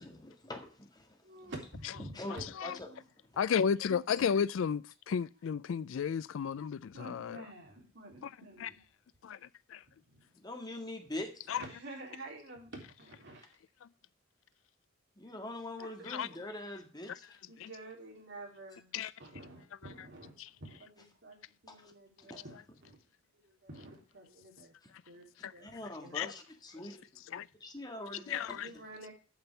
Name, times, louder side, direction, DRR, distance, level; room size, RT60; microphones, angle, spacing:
voice 1, 0.0-1.5 2.2-2.9 3.3-3.4 10.3-11.5 15.2-17.3 21.7-21.9 22.3-22.4 24.8-24.9 25.6-27.0 27.6-28.6, left 1 dB, 20° left, 1.8 m, -43 dB
voice 2, 1.2-3.0 6.9-8.8 10.0-10.3 11.5-13.5 15.8-16.4 17.5-21.4 21.6-23.0 23.4-24.8 25.1-26.2 28.5-29.1, right 2 dB, 60° right, 3.6 m, -50 dB
voice 3, 2.3-2.8 3.4-7.5 8.6-8.7 9.2-9.4 9.7-9.8 11.5-11.8 16.0-16.3 17.1-17.2 17.6-17.7 18.9-19.1 19.8-20.1 20.4-20.5 25.4-25.5 26.1-26.3 27.2-27.5 28.3-28.7, left 7 dB, 70° left, 0.4 m, -33 dB
8.6 x 6.0 x 6.9 m
head